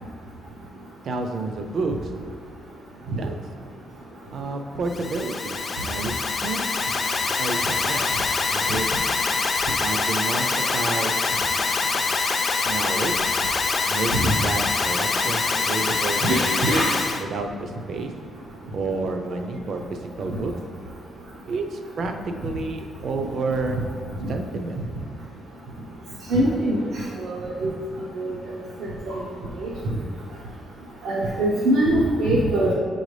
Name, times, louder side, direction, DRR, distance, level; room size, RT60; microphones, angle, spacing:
voice 1, 1.0-2.1 3.1-3.3 4.3-6.6 7.4-8.1 8.5-8.9 9.8-11.2 12.7-13.3 13.9-16.9 17.2-18.1 18.7-20.5 21.5-22.1 22.4-23.8 24.3-24.8, right 3 dB, 45° right, 5 dB, 0.5 m, -30 dB
Alarm, 4.9-17.2, left 4 dB, 30° left, 0.3 m, -24 dB
voice 2, 16.2-16.9 24.2-24.3 26.3-26.9 27.2-27.7 28.1-28.3 29.1-29.2 29.6-29.7 31.0-32.7, right 1 dB, 85° right, -5 dB, 0.7 m, -22 dB
7.4 x 3.9 x 3.2 m, 2.1 s
cardioid pair, 170°, 0 cm